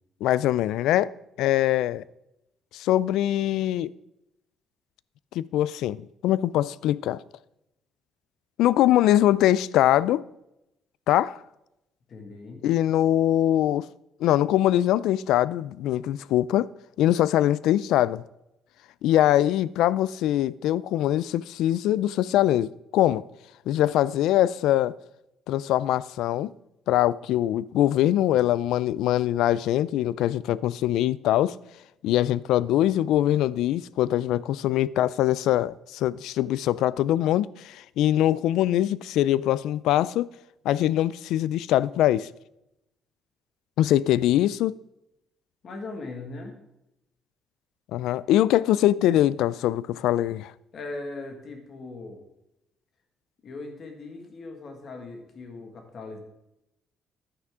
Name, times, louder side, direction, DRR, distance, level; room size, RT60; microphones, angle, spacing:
voice 1, 0.2-1.1 1.4-2.0 2.7-3.9 5.3-7.2 8.6-10.2 11.1-11.4 12.6-13.9 14.2-16.7 17.0-18.2 19.0-23.2 23.7-24.9 25.5-26.5 26.9-31.6 32.0-40.3 40.6-42.3 43.8-44.8 47.9-50.5, left 13 dB, 80° left, 0.3 m, -23 dB
voice 2, 12.1-12.6 45.6-46.6 50.7-52.2 53.4-56.2, left 3 dB, 40° left, 1.8 m, -39 dB
11.0 x 9.6 x 3.6 m
cardioid pair, 170°, 0 cm